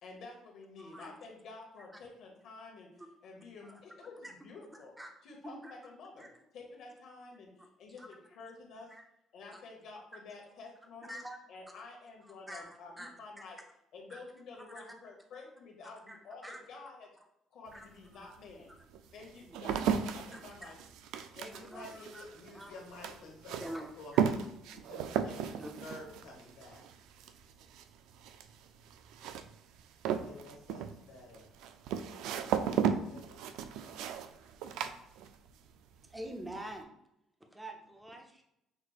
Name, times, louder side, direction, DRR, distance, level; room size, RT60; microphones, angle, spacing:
voice 1, 0.0-4.9 5.2-8.9 9.3-11.2 11.5-13.6 13.9-17.1 17.5-18.7 19.1-20.8, left 3 dB, 55° left, 0 dB, 1.0 m, -50 dB
voice 2, 0.8-1.1 1.9-2.0 3.0-3.1 3.6-3.7 4.2-4.3 4.7-5.1 5.4-5.7 6.2-6.3 7.6-7.7 8.0-8.1 8.9-9.0 9.5-9.6 11.0-11.4 12.2-12.7 13.0-13.4 14.1-14.2 14.7-14.9 16.1-16.2 16.4-16.6 17.7-17.9 18.1-18.3 20.3-20.7 21.3-22.2 22.5-22.7 23.6-24.3 25.2-25.8 36.1-36.9 37.5-38.4, right 1 dB, 5° right, 3 dB, 0.5 m, -46 dB
sound 1, 17.7-17.8 18.5-35.7 36.0-36.5, right 8 dB, 80° right, 0.3 m, -36 dB
voice 3, 21.3-24.4 24.7-26.8 30.1-31.5 32.5-33.6, left 2 dB, 80° left, -1 dB, 1.4 m, -51 dB
5.8 x 3.1 x 2.3 m, 0.83 s
cardioid pair, 165°, 0 cm